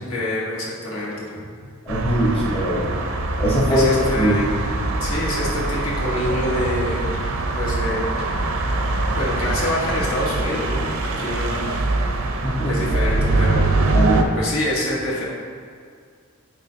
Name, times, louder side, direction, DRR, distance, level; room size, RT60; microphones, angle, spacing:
voice 1, 0.1-1.3 3.7-4.4 5.0-7.0 7.6-8.0 9.2-11.6 12.7-13.6 14.4-15.2, left 1 dB, 80° left, -5 dB, 1.4 m, -26 dB
voice 2, 1.9-2.9 3.4-4.4 12.4-12.7 13.9-14.2, equal, 30° left, -5 dB, 0.9 m, -21 dB
sound 1, 1.9-14.2, right 2 dB, 80° right, 0.6 m, -23 dB
9.0 x 3.8 x 2.7 m, 2.2 s
head